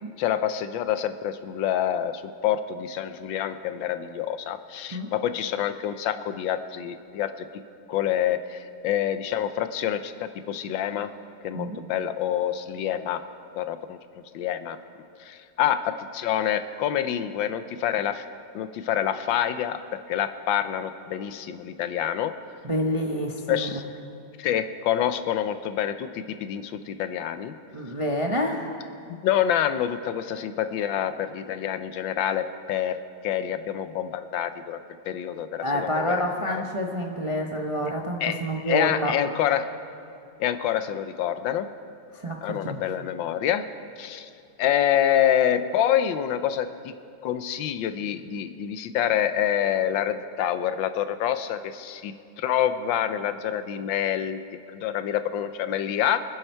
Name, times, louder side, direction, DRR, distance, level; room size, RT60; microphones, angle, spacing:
voice 1, 0.2-7.3 7.9-11.1 11.4-13.2 13.5-14.0 14.3-14.8 15.2-18.2 18.5-19.8 20.1-22.3 23.5-23.8 24.4-27.5 29.1-33.0 33.2-34.8 35.1-36.6 38.2-39.7 40.4-41.7 42.4-43.7 44.0-44.3 44.6-46.9 47.2-54.4 54.7-56.2, left 10 dB, 80° left, 11 dB, 1.4 m, -27 dB
voice 2, 22.6-23.7 27.7-28.7 35.6-39.1 42.2-42.8, equal, 30° right, 1 dB, 0.5 m, -28 dB
25.0 x 10.0 x 4.5 m, 2.6 s
omnidirectional pair, 2.1 m